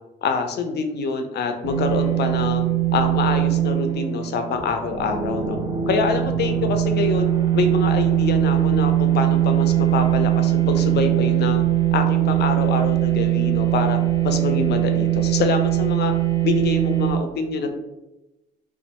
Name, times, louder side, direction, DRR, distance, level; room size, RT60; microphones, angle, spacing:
voice 1, 0.2-2.7 2.9-5.6 5.9-7.3 7.5-11.6 11.9-14.0 14.2-16.1 16.4-17.7, left 4 dB, 55° left, 6 dB, 0.4 m, -25 dB
sound 1, 1.6-17.1, right 12 dB, 20° right, 0.4 m, -21 dB
2.4 x 2.1 x 2.8 m, 0.96 s
cardioid pair, 90°, 20 cm